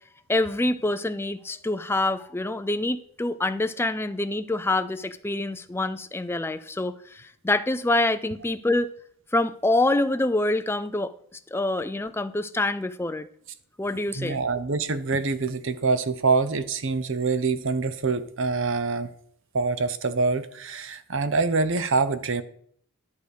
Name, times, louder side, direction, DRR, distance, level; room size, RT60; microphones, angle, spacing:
voice 1, 0.3-8.9 9.3-13.3 13.8-14.4, left 2 dB, 10° left, 11 dB, 0.4 m, -26 dB
voice 2, 14.1-19.1 19.5-22.4, right 4 dB, 60° right, 12 dB, 0.8 m, -25 dB
11.5 x 6.4 x 5.2 m, 0.64 s
head